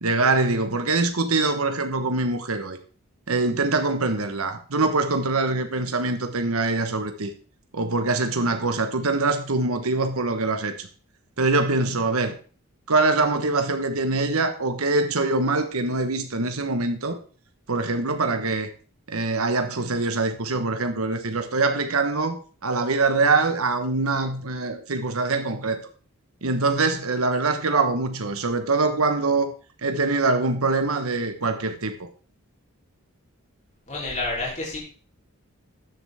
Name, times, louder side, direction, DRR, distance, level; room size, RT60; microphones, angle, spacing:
voice 1, 0.0-2.8 3.3-7.3 7.7-10.9 11.4-12.3 12.9-17.2 17.7-18.7 19.1-25.8 26.4-29.5 29.8-32.1, right 3 dB, 70° right, 1.2 m, -24 dB
voice 2, 33.9-34.8, left 2 dB, 30° left, 3.7 m, -29 dB
13.0 x 7.6 x 3.6 m
head